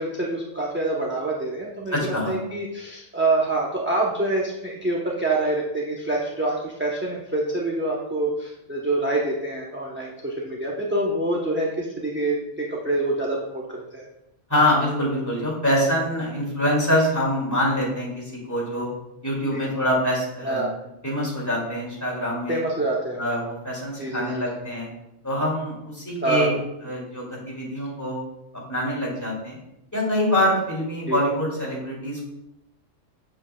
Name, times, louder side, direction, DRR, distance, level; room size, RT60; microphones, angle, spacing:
voice 1, 0.0-1.9 2.3-14.0 19.5-19.7 20.4-20.7 22.5-23.2 24.0-24.4 26.2-26.5 31.0-31.2, right 2 dB, 15° right, -4 dB, 0.6 m, -26 dB
voice 2, 1.9-2.4 14.5-18.9 19.2-20.7 21.0-22.6 23.2-24.9 25.2-26.5 26.8-28.2 28.7-29.6 29.9-32.3, left 1 dB, 15° left, -5 dB, 2.3 m, -25 dB
7.4 x 7.3 x 2.2 m, 0.86 s
omnidirectional pair, 1.3 m